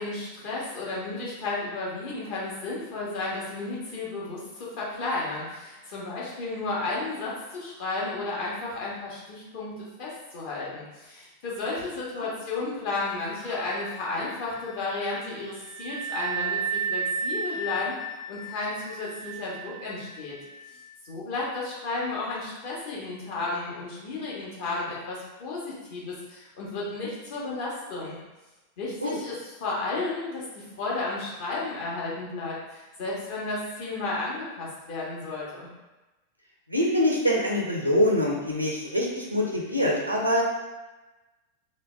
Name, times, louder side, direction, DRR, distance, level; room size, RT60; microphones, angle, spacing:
voice 1, 0.0-20.4 21.0-28.2 28.8-35.7, left 3 dB, 50° left, -5 dB, 1.0 m, -33 dB
Wind instrument woodwind instrument, 13.5-20.9, right 4 dB, 10° right, 0.5 m, -34 dB
voice 2, 36.7-40.4, left 1 dB, 90° right, -2 dB, 0.5 m, -24 dB
3.2 x 2.1 x 3.2 m, 1.1 s
figure-of-eight pair, 90°, 0 cm